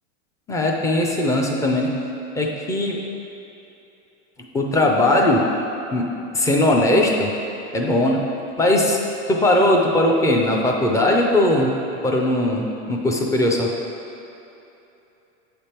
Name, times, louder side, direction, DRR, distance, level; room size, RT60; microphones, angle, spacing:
voice 1, 0.5-1.9 2.3-3.0 4.5-5.4 5.9-6.1 6.3-7.3 7.7-8.2 8.6-9.0 9.3-11.7 12.0-13.7, left 1 dB, 10° left, -1 dB, 0.3 m, -19 dB
8.3 x 3.4 x 4.3 m, 2.8 s
hypercardioid pair, 120°, 37 cm